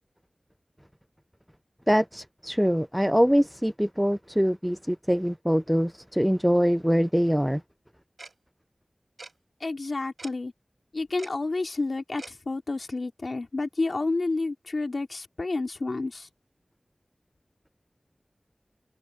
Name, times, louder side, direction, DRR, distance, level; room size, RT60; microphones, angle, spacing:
voice 1, 1.9-7.6, equal, 5° right, 0.4 m, -23 dB
Tick-tock, 8.2-8.3 9.2-9.3 10.2-10.3 11.2-11.3 12.2-12.3, right 3 dB, 70° right, 7.0 m, -42 dB
voice 2, 9.6-10.5 10.9-16.3, left 3 dB, 70° left, 2.7 m, -30 dB
wide cardioid pair, 55°, 0 cm